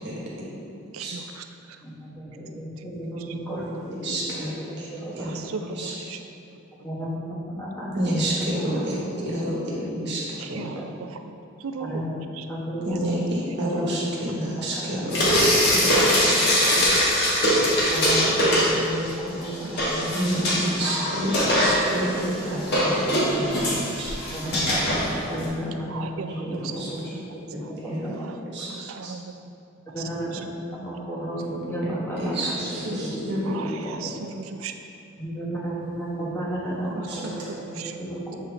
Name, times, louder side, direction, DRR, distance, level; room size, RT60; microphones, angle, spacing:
voice 1, 0.9-1.8 2.8-2.9 3.2-3.3 5.2-6.2 10.4-11.2 11.6-12.0 12.3-12.5 12.9-13.0 13.6-13.7 15.8-17.3 19.6-19.8 20.1-20.7 21.9-22.4 25.9-27.2 27.6-27.7 28.1-29.5 29.9-30.0 30.3-30.4 33.4-34.7 36.8-38.0, right 5 dB, 80° right, 7 dB, 0.4 m, -38 dB
voice 2, 1.8-4.2 4.7-5.3 6.8-8.2 8.6-8.7 9.1-10.0 10.7-10.8 11.8-12.2 12.5-13.0 13.4-14.1 14.6-15.0 15.6-15.7 16.3-16.4 17.9-19.5 19.8-21.5 22.2-22.6 24.3-27.1 27.4-28.1 28.4-28.5 29.9-33.2 33.6-33.9 35.2-38.4, right 1 dB, 10° left, -7 dB, 1.2 m, -33 dB
voice 3, 4.0-4.9 5.1-5.4 5.8-5.9 7.9-9.6 10.0-10.2 10.5-10.6 12.8-15.3 16.0-16.6 17.0-17.1 20.1-23.7 24.0-24.1 26.3-26.4 26.8-26.9 27.5-28.1 28.5-28.7 29.0-29.1 31.8-33.8 37.1-37.2, right 1 dB, 55° right, -5 dB, 1.4 m, -29 dB
Frying (food), 15.1-19.1 19.4-25.5, equal, 55° left, 1.4 m, -22 dB
7.6 x 3.7 x 3.3 m, 2.5 s
head